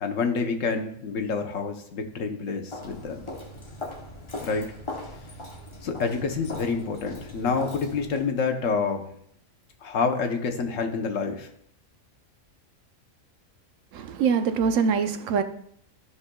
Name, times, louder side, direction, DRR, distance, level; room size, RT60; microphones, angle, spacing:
voice 1, 0.0-3.2 4.4-4.7 5.8-9.1 9.8-11.5, left 5 dB, 75° left, 5 dB, 1.2 m, -28 dB
Walk footsteps, 2.7-8.3, left 1 dB, 25° left, 0.8 m, -39 dB
voice 2, 13.9-15.4, right 6 dB, 75° right, 9 dB, 1.0 m, -23 dB
12.5 x 5.5 x 2.3 m, 0.68 s
omnidirectional pair, 1.4 m